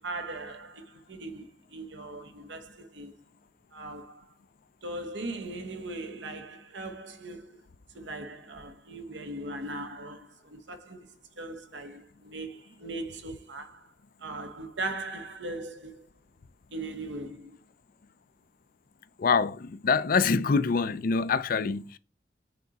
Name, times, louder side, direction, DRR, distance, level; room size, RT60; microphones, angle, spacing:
voice 1, 0.0-3.1 3.7-4.3 4.8-7.6 7.9-13.9 14.2-16.1 16.7-17.6, right 2 dB, 75° right, 1.0 m, -39 dB
voice 2, 19.2-22.0, left 5 dB, 50° left, 0.4 m, -25 dB
8.1 x 3.7 x 4.1 m
head